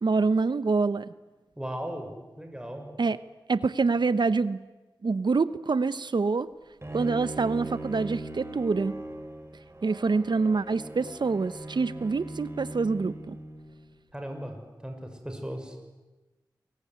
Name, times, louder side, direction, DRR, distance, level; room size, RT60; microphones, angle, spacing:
voice 1, 0.0-1.1 3.0-3.2 3.5-4.6 5.0-6.5 6.9-9.0 9.8-13.4, right 4 dB, 75° right, 15 dB, 0.9 m, -26 dB
voice 2, 1.6-2.1 2.4-2.9 14.1-14.6 14.8-15.8, equal, 10° right, 4 dB, 6.4 m, -36 dB
Bowed string instrument, 6.8-13.9, right 2 dB, 35° right, 5.6 m, -40 dB
28.0 x 22.5 x 9.7 m, 1.2 s
cardioid pair, 40°, 8 cm